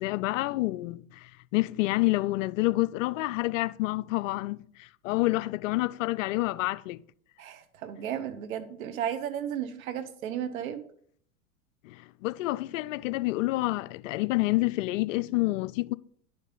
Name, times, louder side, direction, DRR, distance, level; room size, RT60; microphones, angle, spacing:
voice 1, 0.0-7.0 11.8-15.9, left 20 dB, 65° left, 0.5 m, -28 dB
voice 2, 7.4-10.8, right 9 dB, 70° right, 1.1 m, -34 dB
11.0 x 5.2 x 3.8 m
hypercardioid pair, 105°, 42 cm